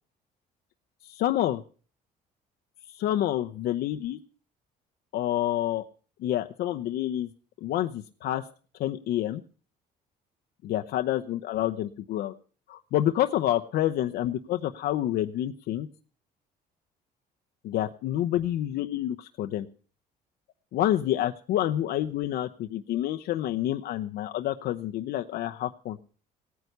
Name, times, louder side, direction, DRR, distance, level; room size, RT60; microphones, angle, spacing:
voice 1, 1.0-1.6 2.9-4.2 5.1-5.8 6.2-7.3 7.6-8.5 8.8-9.4 10.6-12.3 12.7-15.9 17.6-19.7 20.7-26.0, left 13 dB, 75° left, 6 dB, 0.8 m, -28 dB
17.0 x 9.4 x 6.7 m, 0.40 s
cardioid pair, 110°, 17 cm